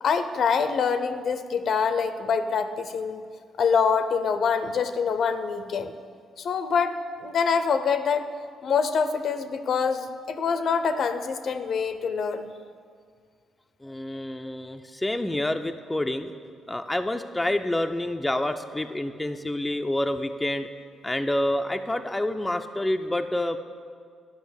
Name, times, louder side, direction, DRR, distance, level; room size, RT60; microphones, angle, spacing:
voice 1, 0.0-3.3 3.6-5.9 6.4-8.2 8.6-12.5, left 6 dB, 60° left, 10 dB, 0.6 m, -25 dB
voice 2, 13.8-16.3 16.7-20.7 21.0-23.6, left 1 dB, 10° left, 6 dB, 0.4 m, -28 dB
10.5 x 5.5 x 7.0 m, 2.1 s
cardioid pair, 90°, 0 cm